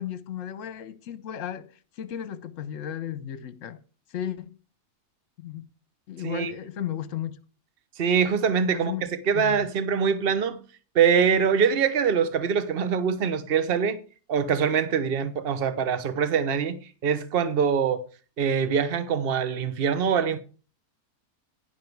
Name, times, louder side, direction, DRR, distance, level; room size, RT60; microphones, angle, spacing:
voice 1, 0.0-1.7 2.0-3.8 4.1-4.5 5.4-5.7 6.1-7.4 8.7-9.0 9.3-9.7, left 10 dB, 55° left, 1.2 m, -34 dB
voice 2, 8.0-10.6 10.9-14.0 14.3-16.8 17.0-18.0 18.4-20.4, right 6 dB, 40° right, 1.1 m, -24 dB
10.5 x 10.5 x 4.7 m
omnidirectional pair, 1.7 m